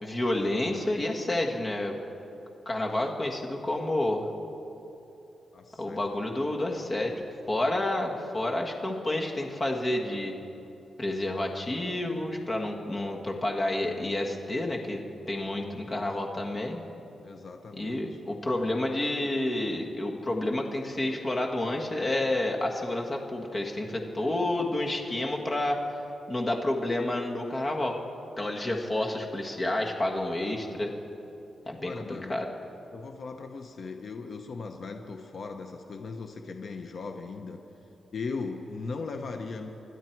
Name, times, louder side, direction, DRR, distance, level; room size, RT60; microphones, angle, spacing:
voice 1, 0.0-1.9 2.6-4.3 5.8-10.3 11.0-15.0 15.3-16.8 17.8-25.8 26.3-28.0 28.4-30.9 31.7-32.5, left 1 dB, 25° left, 1 dB, 1.5 m, -29 dB
voice 2, 5.5-6.1 15.8-16.0 17.2-18.2 31.8-32.3 32.9-37.6 38.1-39.7, left 4 dB, 50° left, 4 dB, 0.9 m, -38 dB
26.5 x 12.0 x 4.6 m, 2.9 s
wide cardioid pair, 155°, 0 cm